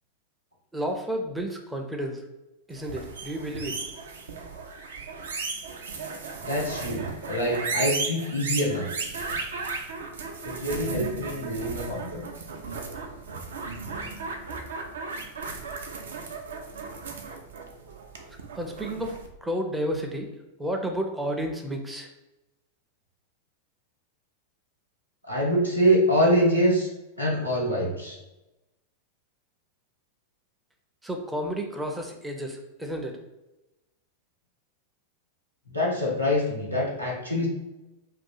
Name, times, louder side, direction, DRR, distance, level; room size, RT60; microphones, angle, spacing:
voice 1, 0.7-2.2 2.7-3.8 18.5-19.2 19.4-20.3 20.6-22.1 31.0-33.2, equal, 5° right, 2 dB, 0.4 m, -31 dB
sound 1, 2.8-19.3, right 4 dB, 65° right, 0.4 m, -35 dB
voice 2, 6.4-8.9 10.4-12.3 25.3-26.9 27.2-28.2 35.7-37.5, equal, 85° right, -3 dB, 0.9 m, -25 dB
2.7 x 2.4 x 3.8 m, 0.98 s
figure-of-eight pair, 90°, 0 cm